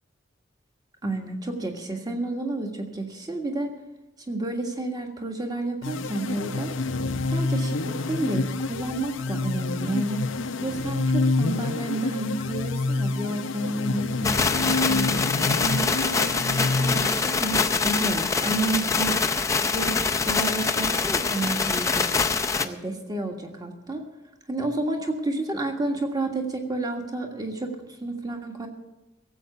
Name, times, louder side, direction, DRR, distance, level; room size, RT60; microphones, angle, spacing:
voice 1, 1.0-3.7 4.3-6.7 7.3-10.3 10.6-15.2 15.6-19.2 19.7-22.1 22.6-24.0 24.5-28.7, right 2 dB, 20° right, 3 dB, 1.6 m, -30 dB
sound 1, 5.8-17.6, left 3 dB, 80° left, 0.7 m, -28 dB
sound 2, 14.2-22.7, left 4 dB, 15° left, 0.5 m, -24 dB
17.0 x 8.0 x 6.8 m, 1.0 s
head